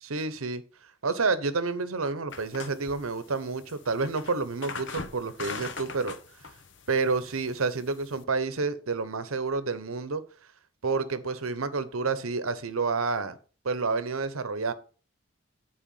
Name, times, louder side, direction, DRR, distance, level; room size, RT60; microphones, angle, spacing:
voice 1, 0.0-0.6 1.0-6.2 6.9-10.2 10.8-13.4 13.6-14.7, right 4 dB, 85° right, 0.9 m, -29 dB
sound 1, 2.3-8.2, left 4 dB, 60° left, 0.9 m, -42 dB
10.5 x 4.7 x 5.5 m
head